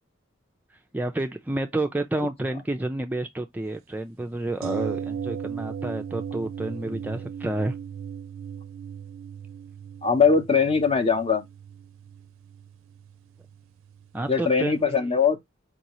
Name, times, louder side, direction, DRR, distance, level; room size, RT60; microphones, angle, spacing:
voice 1, 0.9-7.8 14.1-15.2, right 1 dB, 10° right, 0.3 m, -30 dB
sound 1, 4.6-14.5 14.8-14.9, right 7 dB, 90° right, 0.4 m, -37 dB
voice 2, 10.0-11.4 14.3-15.4, left 5 dB, 30° left, 0.7 m, -21 dB
4.6 x 2.7 x 2.9 m
head